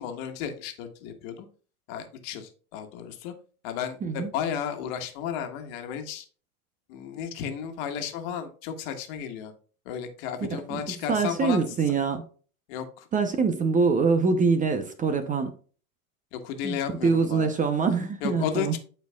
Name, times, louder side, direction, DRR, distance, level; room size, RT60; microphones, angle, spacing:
voice 1, 0.0-1.5 1.9-3.3 3.6-6.2 6.9-9.5 9.8-11.7 12.7-13.1 16.3-17.5 18.2-18.8, left 8 dB, 50° left, 1.6 m, -33 dB
voice 2, 10.4-10.8 11.1-12.2 13.1-15.5 16.6-16.8 17.0-18.7, right 4 dB, 20° right, 0.7 m, -24 dB
12.0 x 4.5 x 2.3 m
hypercardioid pair, 115°, 43 cm